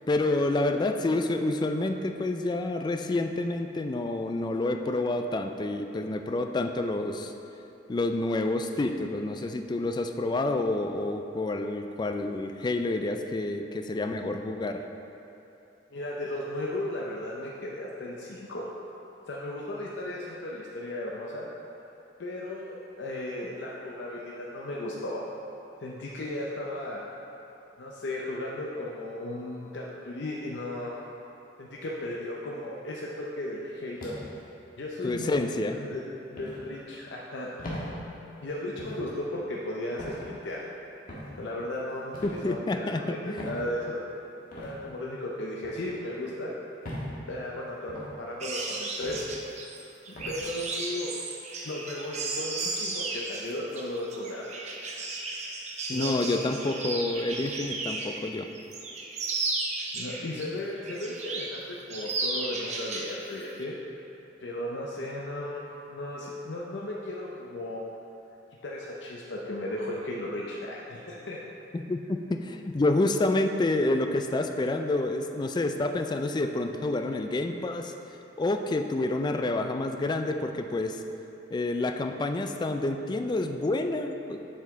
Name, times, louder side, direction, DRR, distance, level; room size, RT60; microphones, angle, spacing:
voice 1, 0.1-7.3 7.9-14.8 35.0-35.8 42.2-43.4 55.9-58.5 71.7-77.9 78.4-81.0 81.5-84.5, left 2 dB, 25° left, 6 dB, 0.3 m, -28 dB
voice 2, 15.9-18.7 19.3-21.5 22.2-25.2 25.8-27.0 27.8-30.9 31.6-34.2 34.8-37.5 38.4-40.6 41.4-44.0 44.5-46.6 47.3-49.2 50.1-51.1 51.6-54.4 55.9-56.3 59.9-63.8 64.4-67.8 68.6-71.4, left 1 dB, 70° left, -4 dB, 0.6 m, -35 dB
sound 1, 34.0-34.4 35.1-35.4 36.4-36.6 37.6-37.9 38.8-39.0 40.0-40.2 41.1-41.3 42.1-42.4 43.4-43.6 44.5-44.7 45.6-45.9 46.8-47.1 47.9-48.1 49.0-49.3 50.2-50.4, left 1 dB, 50° left, 1.4 m, -39 dB
sound 2, 48.4-58.2 58.6-60.4 60.8-61.6 61.9-63.1 63.4-63.6, right 3 dB, 40° right, 0.7 m, -34 dB
7.4 x 5.7 x 3.6 m, 2.9 s
head